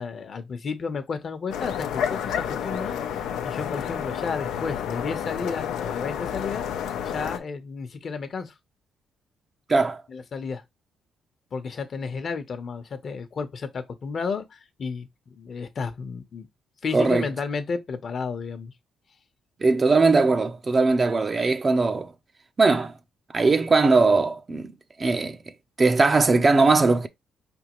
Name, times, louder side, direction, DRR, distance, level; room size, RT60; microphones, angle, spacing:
voice 1, 0.0-3.0 3.4-6.6 7.0-8.5 10.1-10.6 11.5-16.5 16.8-18.7, left 5 dB, 50° left, 0.9 m, -32 dB
sound 1, 1.5-7.4, left 8 dB, 90° left, 0.7 m, -30 dB
voice 2, 9.7-10.0 16.9-17.3 19.6-22.1 22.6-22.9 23.3-24.7 25.0-25.4 25.8-27.1, right 3 dB, 30° right, 0.6 m, -20 dB
4.8 x 3.5 x 3.1 m
cardioid pair, 90°, 0 cm